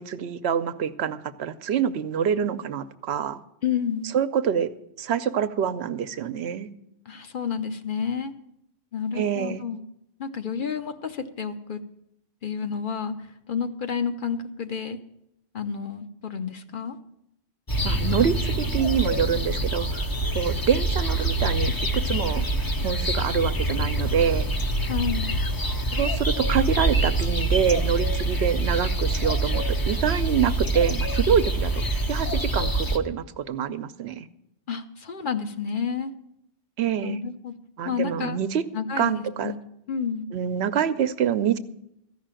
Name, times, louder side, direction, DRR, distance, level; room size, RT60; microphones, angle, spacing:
voice 1, 0.0-3.4 4.1-4.7 5.0-6.7 9.1-9.6 17.8-20.1 20.3-22.5 22.8-24.5 25.9-34.3 36.8-37.2 37.8-38.7 39.0-39.5 40.3-41.6, right 8 dB, 75° right, 12 dB, 0.9 m, -26 dB
voice 2, 3.6-4.1 7.1-8.3 8.9-9.8 10.2-11.8 12.4-15.0 15.5-17.0 24.8-25.3 34.7-36.1 37.0-37.5 37.8-38.4 38.7-39.6 39.9-40.2, left 6 dB, 55° left, 8 dB, 0.9 m, -30 dB
sound 1, 17.7-33.0, right 1 dB, 25° left, 0.6 m, -25 dB
14.0 x 5.7 x 8.9 m, 0.81 s
omnidirectional pair, 1.1 m